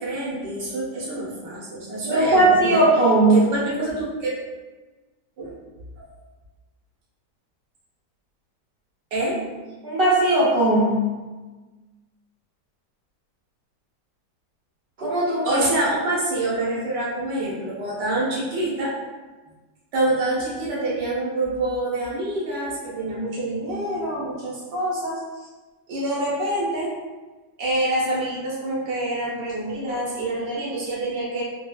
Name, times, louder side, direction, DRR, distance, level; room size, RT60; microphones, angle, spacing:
voice 1, 0.0-2.8 3.3-4.3 5.4-5.5 6.0-6.1 9.1-9.4 15.4-18.9 19.9-25.2 25.9-27.0 27.6-31.4, right 1 dB, 90° right, -6 dB, 1.7 m, -26 dB
voice 2, 2.0-3.4 9.8-11.1 15.0-15.6, right 1 dB, 50° right, -7 dB, 0.7 m, -18 dB
4.5 x 2.5 x 2.3 m, 1.3 s
omnidirectional pair, 1.8 m